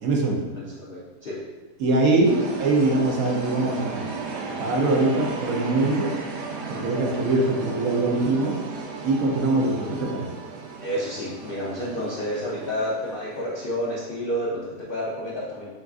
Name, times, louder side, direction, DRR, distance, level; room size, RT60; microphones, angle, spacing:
voice 1, 0.0-0.5 1.8-4.1 4.6-6.2 6.7-8.6 9.0-10.3, right 2 dB, 65° right, -1 dB, 1.1 m, -22 dB
voice 2, 0.5-1.4 2.3-2.4 10.8-15.7, equal, 65° left, -5 dB, 0.5 m, -30 dB
sound 1, 2.2-14.0, right 4 dB, 90° right, 1.2 m, -35 dB
7.1 x 2.4 x 2.4 m, 1.3 s
omnidirectional pair, 1.8 m